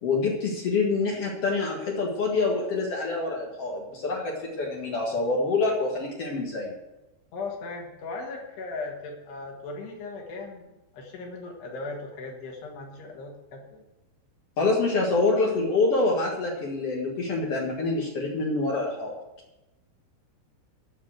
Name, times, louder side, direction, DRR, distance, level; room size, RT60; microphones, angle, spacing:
voice 1, 0.0-6.7 14.6-19.1, left 3 dB, 85° left, -2 dB, 1.3 m, -26 dB
voice 2, 7.3-13.8, left 3 dB, 65° left, 0 dB, 3.6 m, -38 dB
12.0 x 6.5 x 7.8 m, 0.98 s
omnidirectional pair, 5.7 m